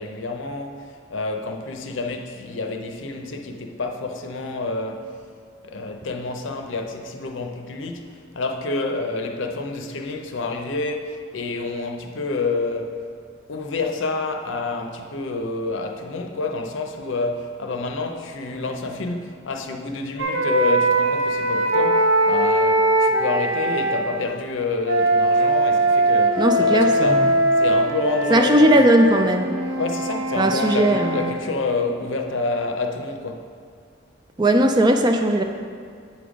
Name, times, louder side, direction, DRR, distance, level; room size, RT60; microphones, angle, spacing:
voice 1, 0.0-5.2 5.6-13.0 13.5-27.3 27.6-28.8 29.8-33.5, left 3 dB, 70° left, 0.6 m, -28 dB
sound 1, 20.2-24.0 24.8-31.3, right 1 dB, 80° right, 1.0 m, -21 dB
voice 2, 26.4-27.2 28.3-29.6 30.4-31.2 34.4-35.4, right 1 dB, 20° right, 0.3 m, -17 dB
7.7 x 5.2 x 5.0 m
head